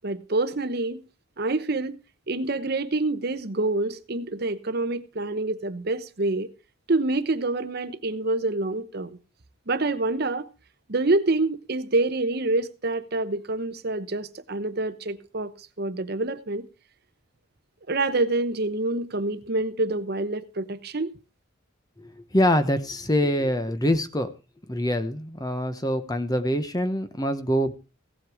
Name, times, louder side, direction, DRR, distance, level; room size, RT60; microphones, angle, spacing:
voice 1, 0.0-1.0 1.4-2.0 2.3-6.5 6.9-9.1 9.7-10.5 10.9-15.5 15.8-16.7 17.9-21.1, right 2 dB, 50° right, 0.9 m, -26 dB
voice 2, 22.0-24.3 24.7-27.7, equal, 20° left, 1.0 m, -25 dB
16.5 x 7.7 x 4.9 m
head